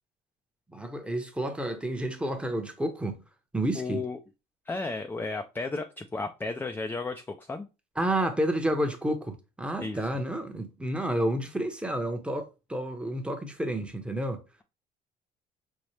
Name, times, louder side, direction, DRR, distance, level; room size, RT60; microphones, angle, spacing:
voice 1, 0.7-3.2 3.5-4.0 8.0-14.4, right 1 dB, 5° right, 0.8 m, -30 dB
voice 2, 3.7-4.2 4.7-7.7 9.8-10.0, left 3 dB, 10° left, 0.3 m, -33 dB
5.5 x 2.0 x 3.1 m
cardioid pair, 110°, 17 cm